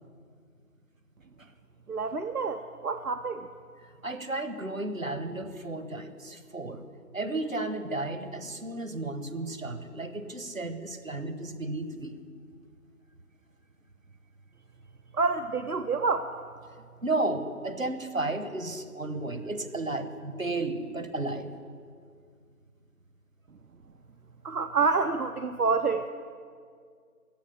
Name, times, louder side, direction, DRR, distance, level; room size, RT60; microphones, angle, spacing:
voice 1, 1.9-3.5 15.1-16.5 24.4-26.1, right 4 dB, 75° right, 8 dB, 0.7 m, -28 dB
voice 2, 3.8-6.8 7.1-12.2 17.0-21.5, right 2 dB, 60° right, 10 dB, 1.2 m, -33 dB
15.0 x 6.1 x 9.7 m, 2.1 s
figure-of-eight pair, 180°, 45 cm